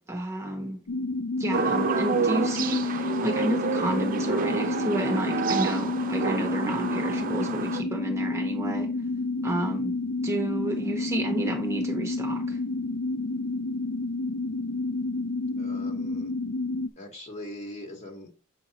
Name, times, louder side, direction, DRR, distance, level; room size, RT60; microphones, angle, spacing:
voice 1, 0.1-0.8 1.4-8.9 9.4-9.9 10.2-12.6, right 1 dB, 15° right, 1.0 m, -31 dB
sound 1, 0.9-16.9, left 3 dB, 75° left, 0.4 m, -30 dB
sound 2, 1.5-7.8, right 5 dB, 45° right, 0.6 m, -29 dB
voice 2, 15.6-16.3 17.0-18.4, left 1 dB, 35° left, 1.8 m, -41 dB
7.3 x 5.5 x 3.0 m
head